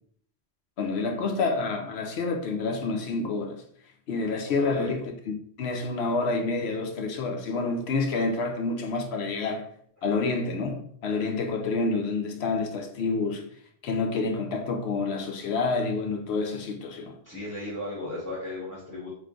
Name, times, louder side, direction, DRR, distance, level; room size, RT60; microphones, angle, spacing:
voice 1, 0.8-3.6 4.1-9.7 10.0-13.4 13.8-17.2, left 3 dB, 65° left, 3 dB, 0.8 m, -28 dB
voice 2, 4.4-4.9 17.2-19.1, left 1 dB, 15° right, -5 dB, 0.8 m, -36 dB
3.4 x 3.1 x 3.7 m, 0.64 s
omnidirectional pair, 1.3 m